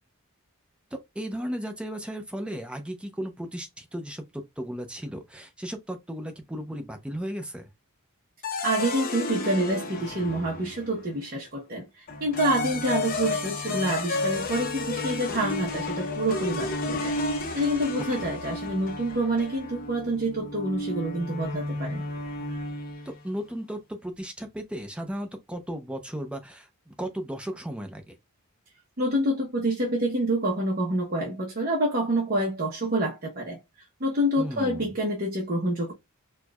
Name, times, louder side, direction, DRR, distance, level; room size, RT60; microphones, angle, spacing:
voice 1, 0.9-7.7 18.2-18.3 23.0-28.1 34.4-34.9, equal, 5° right, 0.5 m, -35 dB
sound 1, 8.4-11.0 12.1-23.2, left 2 dB, 40° left, 0.6 m, -32 dB
voice 2, 8.6-22.0 29.0-33.6 34.0-35.9, right 1 dB, 40° right, 0.8 m, -27 dB
4.4 x 2.3 x 2.2 m
head